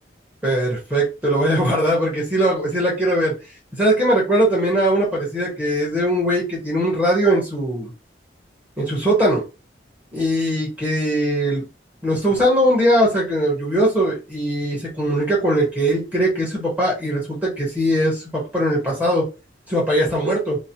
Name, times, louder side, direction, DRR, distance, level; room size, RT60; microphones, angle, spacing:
voice 1, 0.4-3.3 3.8-7.9 8.8-9.4 10.1-11.6 12.0-19.2 19.7-20.6, right 1 dB, 10° right, -4 dB, 1.1 m, -20 dB
3.0 x 2.2 x 2.7 m, 0.29 s
head